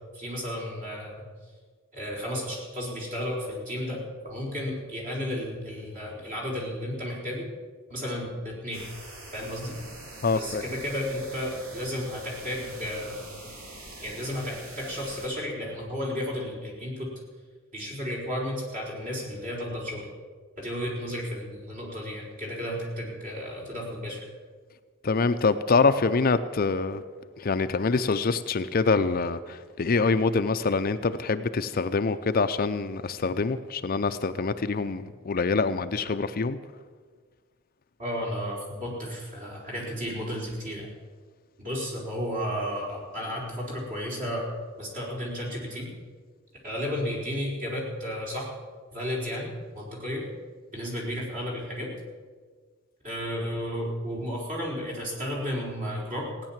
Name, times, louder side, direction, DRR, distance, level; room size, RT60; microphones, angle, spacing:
voice 1, 0.1-1.1 1.9-7.5 7.9-8.8 9.3-9.8 10.3-13.3 14.0-17.1 17.7-20.1 20.6-24.2 38.0-40.9 41.6-44.5 44.8-45.9 46.6-48.5 48.9-50.2 50.7-51.9 53.0-56.3, equal, 40° right, -3 dB, 4.6 m, -33 dB
sound 1, 8.7-15.3, right 1 dB, 80° right, 2.8 m, -44 dB
voice 2, 10.2-10.6 25.0-27.0 27.4-36.6, left 4 dB, 45° left, 10 dB, 0.5 m, -25 dB
16.5 x 9.8 x 7.4 m, 1.5 s
head